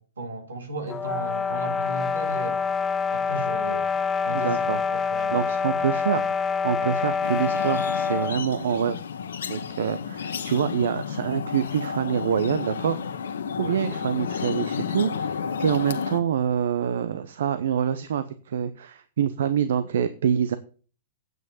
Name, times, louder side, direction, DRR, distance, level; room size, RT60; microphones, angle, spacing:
voice 1, 0.0-2.7 3.1-3.9 4.2-5.4 13.5-13.8, right 2 dB, 90° right, 3.3 m, -36 dB
sound 1, 0.9-8.4, left 5 dB, 20° left, 0.7 m, -26 dB
voice 2, 4.3-5.0 5.3-9.0 9.5-13.0 13.6-20.6, right 8 dB, 70° right, 0.9 m, -26 dB
sound 2, 7.2-16.2, left 6 dB, 80° left, 1.2 m, -32 dB
9.3 x 8.1 x 7.2 m
hypercardioid pair, 120°, 0 cm